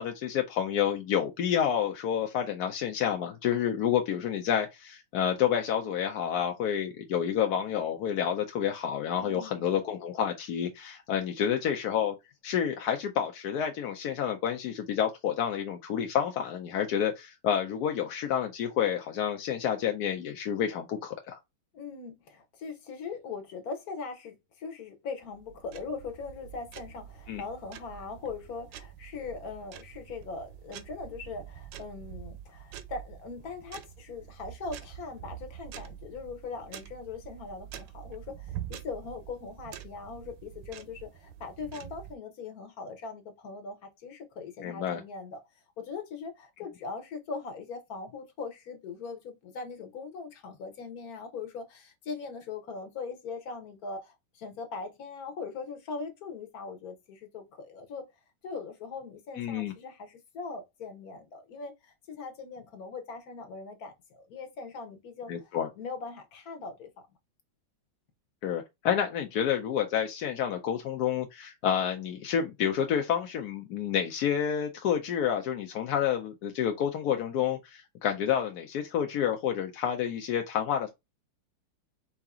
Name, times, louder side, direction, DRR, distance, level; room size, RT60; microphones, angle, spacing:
voice 1, 0.0-12.1 12.4-21.4 27.3-27.4 44.6-45.0 59.4-59.7 65.3-65.7 68.4-80.9, left 9 dB, 70° left, 1.0 m, -29 dB
voice 2, 9.2-9.6 21.7-58.1 58.4-66.9, left 4 dB, 50° left, 1.4 m, -40 dB
sound 1, 25.2-42.2, right 11 dB, 70° right, 1.2 m, -46 dB
4.8 x 2.8 x 3.5 m
omnidirectional pair, 2.2 m